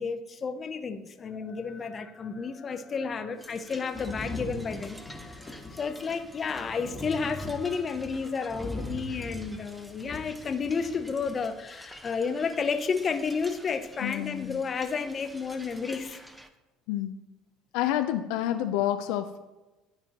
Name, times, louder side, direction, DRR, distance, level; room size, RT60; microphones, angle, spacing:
voice 1, 0.0-16.2, left 5 dB, 35° left, 0.7 m, -31 dB
sound 1, 3.4-16.5, right 1 dB, 5° right, 0.6 m, -50 dB
Thunder, 3.9-11.3 12.4-12.5, left 1 dB, 20° left, 1.3 m, -41 dB
voice 2, 14.0-14.6 16.9-17.2 17.7-19.4, left 12 dB, 75° left, 0.4 m, -29 dB
12.5 x 4.3 x 2.9 m
supercardioid pair, 95°, 0 cm